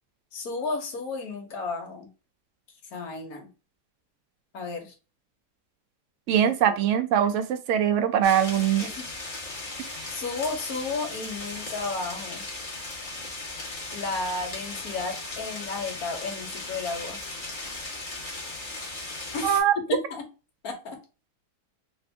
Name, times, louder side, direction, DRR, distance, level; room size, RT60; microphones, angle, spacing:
voice 1, 0.3-2.1 2.9-3.5 4.5-4.9 6.4-6.8 8.8-9.1 10.1-12.4 13.9-17.2 19.3-19.6 19.9-20.2 20.6-21.0, left 3 dB, 65° left, 2 dB, 1.4 m, -33 dB
voice 2, 6.3-8.9 19.4-20.0, right 9 dB, 75° right, 9 dB, 0.7 m, -22 dB
sound 1, 8.2-19.6, left 2 dB, 35° left, 1.1 m, -37 dB
3.4 x 2.6 x 3.3 m, 0.32 s
omnidirectional pair, 1.8 m